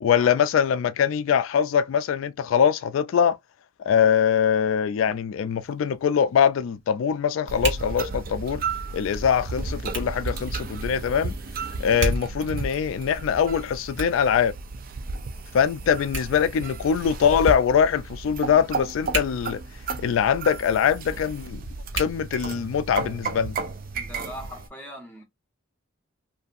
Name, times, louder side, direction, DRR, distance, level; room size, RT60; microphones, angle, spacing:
voice 1, 0.0-3.4 3.9-8.6 8.9-11.3 11.8-14.5 15.5-19.6 20.0-21.6 21.9-23.6, left 7 dB, 75° left, 0.3 m, -22 dB
Hands, 5.4-23.0, right 2 dB, 60° right, 1.6 m, -39 dB
sound 1, 7.5-24.7, right 3 dB, 45° right, 0.4 m, -33 dB
voice 2, 23.9-25.2, equal, 10° left, 1.0 m, -40 dB
2.6 x 2.5 x 2.4 m
head